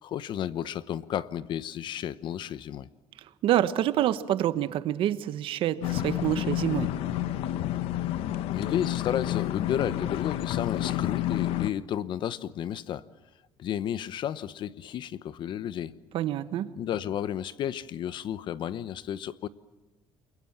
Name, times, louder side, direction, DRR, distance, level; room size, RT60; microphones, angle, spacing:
voice 1, 0.0-2.9 8.5-13.0 13.6-15.9 16.8-19.5, left 10 dB, 55° left, 1.0 m, -32 dB
voice 2, 3.4-6.9 16.1-16.7, right 12 dB, 65° right, 1.3 m, -27 dB
sound 1, 5.8-11.7, left 13 dB, 85° left, 1.1 m, -30 dB
29.5 x 22.5 x 7.4 m
cardioid pair, 140°, 10 cm